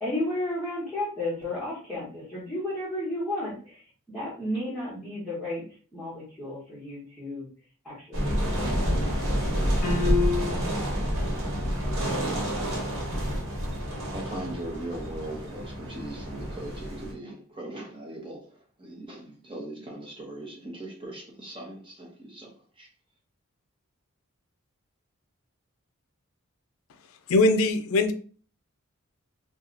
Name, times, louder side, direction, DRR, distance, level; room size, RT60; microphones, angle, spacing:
voice 1, 0.0-3.8 4.1-5.6 5.9-7.5 7.8-9.2, left 1 dB, 5° left, -11 dB, 1.1 m, -33 dB
sound 1, 8.1-17.1, equal, 70° right, 1.3 m, -28 dB
sound 2, 9.8-10.9, left 5 dB, 45° left, 1.1 m, -28 dB
voice 2, 14.1-18.4 18.8-22.5 22.8-22.9, right 1 dB, 25° right, -1 dB, 0.9 m, -39 dB
voice 3, 27.3-28.1, left 2 dB, 75° left, 9 dB, 0.4 m, -21 dB
2.8 x 2.3 x 3.8 m, 0.42 s
head